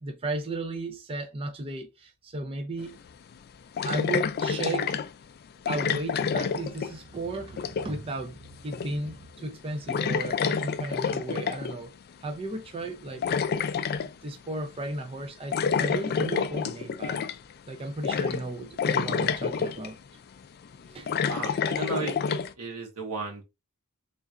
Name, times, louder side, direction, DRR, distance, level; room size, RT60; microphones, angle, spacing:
voice 1, 0.0-3.0 3.8-5.0 5.7-8.4 8.6-11.9 12.2-13.3 14.0-17.3 17.7-20.0 20.9-21.1 21.5-21.6, right 2 dB, 25° right, 0.4 m, -35 dB
sound 1, 2.8-2.9 3.8-5.1 5.7-7.2 7.4-8.0 8.7-9.1 9.4-9.6 9.9-11.8 12.8-14.1 15.5-17.5 18.0-18.5 18.8-19.9 20.6-22.5, left 6 dB, 45° left, 0.3 m, -28 dB
voice 2, 21.3-23.4, right 3 dB, 85° right, 1.4 m, -35 dB
3.8 x 3.3 x 2.4 m
head